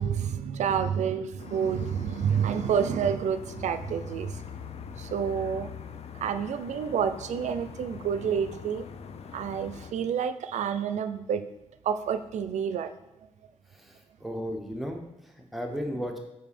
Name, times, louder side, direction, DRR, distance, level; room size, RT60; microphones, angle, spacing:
voice 1, 0.0-4.4 5.0-5.7 6.2-8.8 9.3-11.4 11.8-12.9, right 7 dB, 85° right, 11 dB, 0.4 m, -29 dB
sound 1, 1.4-9.9, left 8 dB, 60° left, 0.4 m, -43 dB
voice 2, 13.7-16.2, equal, ahead, 2 dB, 0.9 m, -35 dB
5.4 x 5.2 x 4.2 m, 0.89 s
wide cardioid pair, 115°, 12 cm